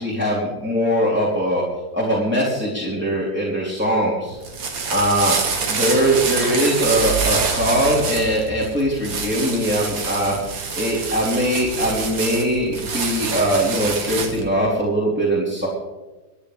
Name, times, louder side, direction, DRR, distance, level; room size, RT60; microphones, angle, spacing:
voice 1, 0.0-1.6 1.9-4.4 4.9-5.4 5.7-15.7, equal, 5° right, -6 dB, 3.0 m, -21 dB
sound 1, 4.3-14.5, right 5 dB, 75° right, 2.4 m, -26 dB
26.0 x 10.5 x 3.4 m, 1.2 s
omnidirectional pair, 2.0 m